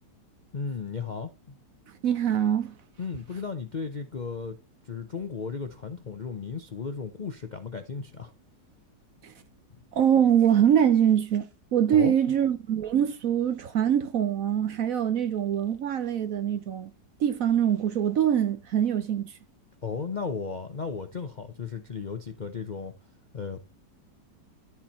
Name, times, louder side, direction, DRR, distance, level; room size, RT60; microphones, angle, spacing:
voice 1, 0.5-1.6 3.0-4.6 4.8-8.3 11.9-12.1 19.8-22.9 23.3-23.6, left 5 dB, 45° left, 0.6 m, -35 dB
voice 2, 2.0-2.7 9.2-9.3 9.9-11.5 11.7-16.9 17.2-19.3, right 9 dB, 60° right, 1.0 m, -23 dB
13.0 x 4.4 x 4.2 m
omnidirectional pair, 1.9 m